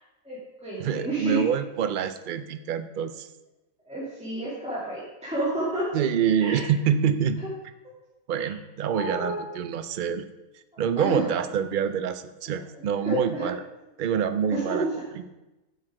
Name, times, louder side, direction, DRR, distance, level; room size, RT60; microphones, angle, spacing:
voice 1, 0.2-1.4 3.9-5.9 6.4-6.7 8.4-8.5 8.9-9.4 10.7-11.3 13.0-13.5 14.5-14.9, right 1 dB, 5° right, -9 dB, 2.2 m, -30 dB
voice 2, 0.8-3.3 5.9-7.4 8.3-10.2 10.8-13.6 14.0-14.8, right 8 dB, 70° right, 10 dB, 0.4 m, -26 dB
8.2 x 6.3 x 4.9 m, 1.0 s
omnidirectional pair, 1.4 m